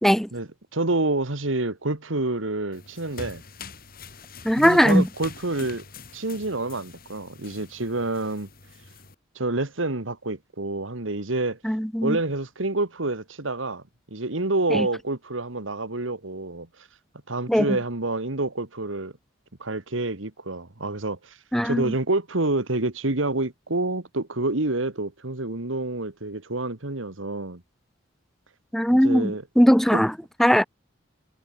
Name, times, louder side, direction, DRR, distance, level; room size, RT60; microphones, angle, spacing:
voice 1, 0.3-3.4 4.6-5.8 6.1-8.5 9.4-11.6 12.0-13.8 14.1-16.7 17.3-19.1 19.6-21.4 21.6-27.6 28.9-29.4 29.9-30.0, right 2 dB, 80° right, 2.1 m, -28 dB
sound 1, 2.7-9.1, left 4 dB, 50° left, 5.5 m, -44 dB
voice 2, 4.4-5.1 11.6-12.2 14.7-14.9 17.5-17.8 21.5-21.8 28.7-30.1 30.4-30.6, equal, ahead, 1.7 m, -19 dB
head